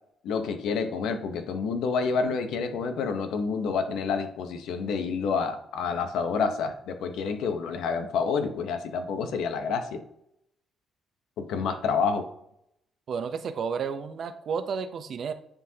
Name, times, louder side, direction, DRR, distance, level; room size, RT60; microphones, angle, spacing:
voice 1, 0.2-10.0 11.4-12.3, left 5 dB, 85° left, 7 dB, 0.8 m, -28 dB
voice 2, 13.1-15.3, right 6 dB, 60° right, 10 dB, 0.6 m, -31 dB
9.8 x 3.8 x 2.8 m, 0.76 s
cardioid pair, 90°, 0 cm